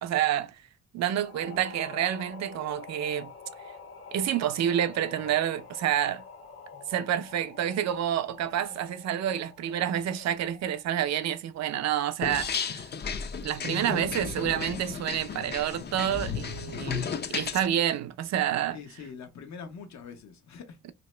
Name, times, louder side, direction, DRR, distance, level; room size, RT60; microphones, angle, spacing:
voice 1, 0.0-0.6 0.9-3.3 4.1-6.2 6.9-12.8 13.4-17.0 17.3-18.8, right 10 dB, 60° right, 0.5 m, -28 dB
sound 1, 1.2-10.9, left 5 dB, 50° left, 1.5 m, -47 dB
sound 2, 12.2-17.7, left 6 dB, 35° left, 0.5 m, -34 dB
voice 2, 18.7-20.8, left 6 dB, 65° left, 1.0 m, -43 dB
2.9 x 2.9 x 3.2 m
cardioid pair, 90°, 30 cm